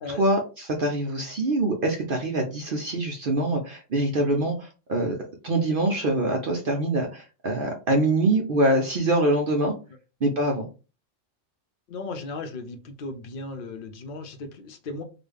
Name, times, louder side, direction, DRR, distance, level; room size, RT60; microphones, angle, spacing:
voice 1, 0.1-5.2 5.4-9.7 10.2-10.7, right 2 dB, 55° right, 0.7 m, -24 dB
voice 2, 11.9-15.0, left 3 dB, 55° left, 0.7 m, -36 dB
3.9 x 2.3 x 3.3 m
omnidirectional pair, 1.3 m